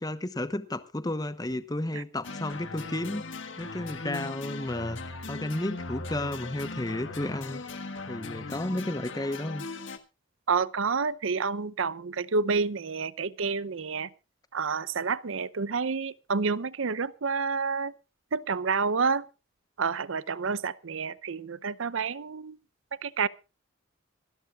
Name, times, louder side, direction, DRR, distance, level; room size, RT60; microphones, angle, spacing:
voice 1, 0.0-7.6 8.1-9.7, left 1 dB, 20° left, 0.9 m, -33 dB
sound 1, 2.2-10.0, left 3 dB, 65° left, 1.5 m, -39 dB
voice 2, 10.5-14.1 14.5-17.9 18.3-19.3 19.8-22.6 23.0-23.3, right 5 dB, 70° right, 0.6 m, -29 dB
25.5 x 12.0 x 2.4 m
head